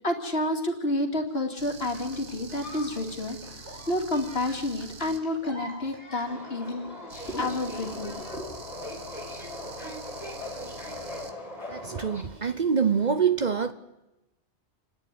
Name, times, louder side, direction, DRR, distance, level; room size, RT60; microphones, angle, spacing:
voice 1, 0.0-6.9 7.3-8.6, left 1 dB, 60° left, 2.7 m, -30 dB
sound 1, 1.6-5.2 7.1-11.3, right 3 dB, 65° right, 1.9 m, -45 dB
sound 2, 1.9-6.7 7.9-8.0, equal, 80° right, 6.4 m, -45 dB
Subway metro underground, 6.3-12.2, left 1 dB, 30° left, 3.1 m, -39 dB
voice 2, 11.7-13.7, right 6 dB, 45° right, 0.9 m, -25 dB
28.5 x 10.5 x 9.7 m
omnidirectional pair, 1.2 m